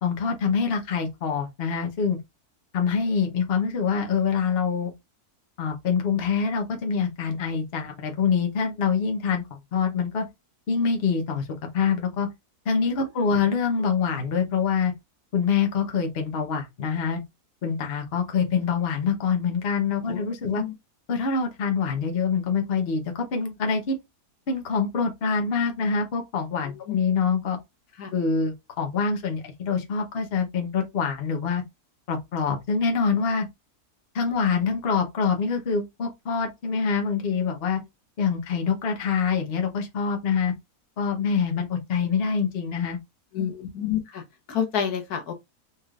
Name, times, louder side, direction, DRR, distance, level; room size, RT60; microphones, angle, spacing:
voice 1, 0.0-2.2 2.7-4.9 5.6-10.3 10.7-12.3 12.7-14.9 15.3-17.2 17.6-20.6 21.1-24.0 24.5-27.6 28.1-31.6 32.1-33.5 34.1-37.8 38.2-40.5 41.0-43.0, left 5 dB, 45° left, 1.0 m, -25 dB
voice 2, 43.3-44.2 44.5-45.3, left 8 dB, 80° left, 1.5 m, -28 dB
4.3 x 3.3 x 2.4 m
omnidirectional pair, 1.6 m